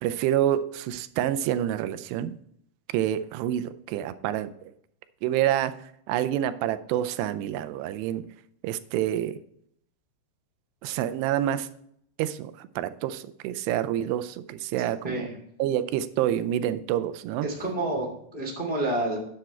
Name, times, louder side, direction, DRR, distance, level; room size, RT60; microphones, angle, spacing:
voice 1, 0.0-2.3 2.9-4.5 5.2-5.7 6.1-8.2 8.6-9.4 10.8-11.7 12.2-15.3 15.6-17.5, right 11 dB, 85° right, 12 dB, 2.7 m, -27 dB
voice 2, 15.0-15.4 17.4-19.2, right 1 dB, 30° left, -1 dB, 0.9 m, -29 dB
9.7 x 7.9 x 4.3 m, 0.69 s
omnidirectional pair, 4.8 m